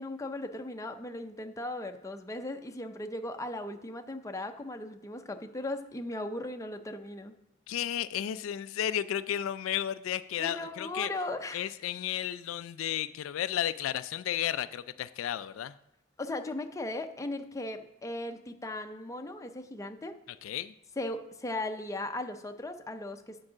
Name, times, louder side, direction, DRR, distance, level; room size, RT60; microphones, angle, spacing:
voice 1, 0.0-7.3 10.4-11.7 16.2-20.2 21.0-23.4, left 2 dB, 15° left, 6 dB, 0.5 m, -37 dB
voice 2, 7.7-11.1 11.5-15.7 20.4-20.7, left 10 dB, 80° left, 13 dB, 0.3 m, -33 dB
8.8 x 4.7 x 6.1 m, 0.81 s
head